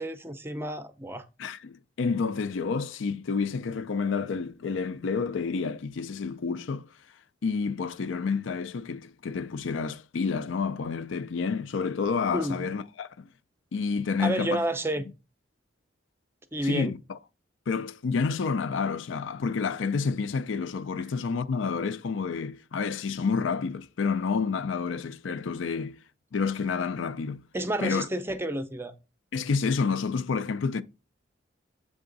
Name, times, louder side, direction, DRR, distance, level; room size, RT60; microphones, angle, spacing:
voice 1, 0.0-1.3 12.3-12.7 14.2-15.1 16.5-16.9 27.5-28.9, right 1 dB, 10° right, 0.5 m, -30 dB
voice 2, 1.4-6.9 7.4-13.3 13.7-14.6 16.6-17.2 17.7-26.0 26.3-27.4 27.8-28.1 29.3-30.8, left 5 dB, 80° left, 0.4 m, -29 dB
7.8 x 3.6 x 3.8 m
head